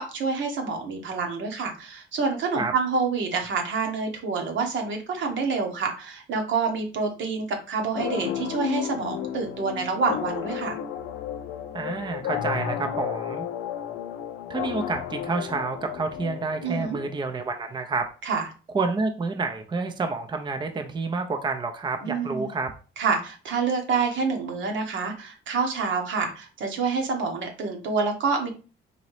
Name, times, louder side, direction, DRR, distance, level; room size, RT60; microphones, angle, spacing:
voice 1, 0.0-10.8 16.6-17.0 18.2-18.4 22.0-22.5 23.0-28.5, right 4 dB, 70° right, 3 dB, 1.0 m, -27 dB
sound 1, 7.9-17.4, left 10 dB, 85° left, 0.4 m, -33 dB
voice 2, 11.7-13.5 14.5-18.1 18.7-22.7, right 3 dB, 20° right, 6 dB, 0.5 m, -29 dB
3.9 x 2.8 x 3.1 m, 0.35 s
cardioid pair, 90°, 20 cm